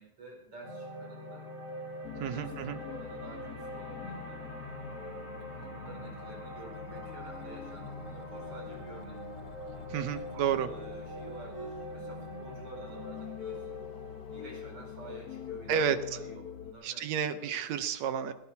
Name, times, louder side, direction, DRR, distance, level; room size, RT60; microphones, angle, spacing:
voice 1, 0.0-1.5 2.2-4.4 5.4-13.8 14.3-17.6, right 2 dB, 50° right, 0 dB, 6.0 m, -50 dB
sound 1, 0.6-16.9, equal, 25° right, 3.8 m, -44 dB
sound 2, 2.0-16.7, left 6 dB, 50° left, 1.2 m, -45 dB
voice 2, 2.2-2.8 9.9-10.7 15.7-16.0 16.8-18.3, right 8 dB, 75° right, 10 dB, 2.0 m, -31 dB
20.5 x 18.0 x 2.8 m, 0.88 s
omnidirectional pair, 3.3 m